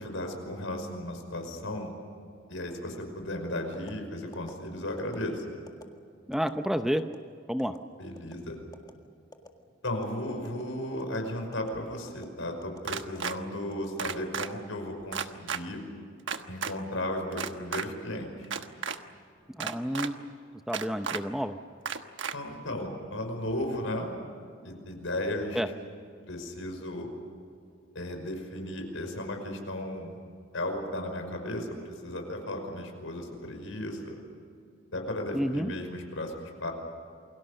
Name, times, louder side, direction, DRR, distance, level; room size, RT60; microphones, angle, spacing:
voice 1, 0.0-1.9 2.5-5.4 8.0-8.6 9.8-15.8 16.5-18.5 22.3-24.1 24.6-25.6 26.3-27.1 27.9-30.2 30.5-34.2 34.9-36.7, left 1 dB, 80° left, 4 dB, 5.5 m, -35 dB
sound 1, 3.7-4.0 4.3-4.5 5.0-5.2 5.7-5.8 6.3-6.5 7.0-7.2 7.6-7.8 8.2-8.4 8.7-8.9 9.3-9.5 9.9-10.1 10.4-10.6 11.0-11.2 11.5-11.7 12.1-12.3 12.6-12.8 13.1-13.3 13.7-14.4 14.8-15.1, left 2 dB, 20° left, 1.9 m, -49 dB
voice 2, 6.3-7.0 7.5-7.7 19.5-20.3 20.7-21.6 25.5-25.7 35.3-35.7, equal, ahead, 8 dB, 0.7 m, -30 dB
sound 2, 12.9-13.4 14.0-14.5 15.1-15.6 16.3-16.7 17.3-17.9 18.4-19.0 19.6-20.1 20.7-21.2 21.9-22.3, right 6 dB, 65° right, 1.3 m, -33 dB
29.0 x 23.0 x 6.5 m, 2.4 s
head